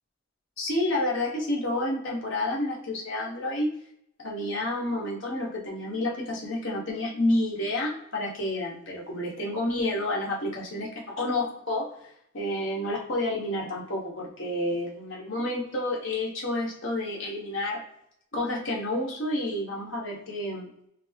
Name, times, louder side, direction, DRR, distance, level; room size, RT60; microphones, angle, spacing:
voice 1, 0.6-3.7 4.2-10.9 11.2-11.9 12.3-17.8 18.3-20.7, left 1 dB, 65° left, -3 dB, 1.1 m, -29 dB
5.8 x 2.0 x 3.4 m, 0.72 s
head